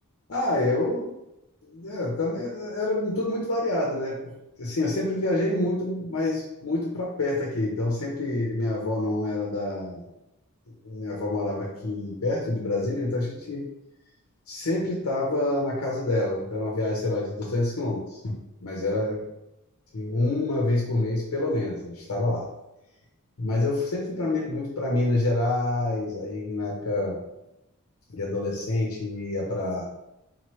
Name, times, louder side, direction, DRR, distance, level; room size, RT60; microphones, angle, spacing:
voice 1, 0.3-1.1 1.6-4.3 4.6-10.0 10.8-13.7 14.5-19.2 19.9-22.5 23.4-27.2 28.1-29.8, left 2 dB, 65° left, -3 dB, 0.7 m, -27 dB
3.9 x 3.0 x 3.0 m, 0.89 s
head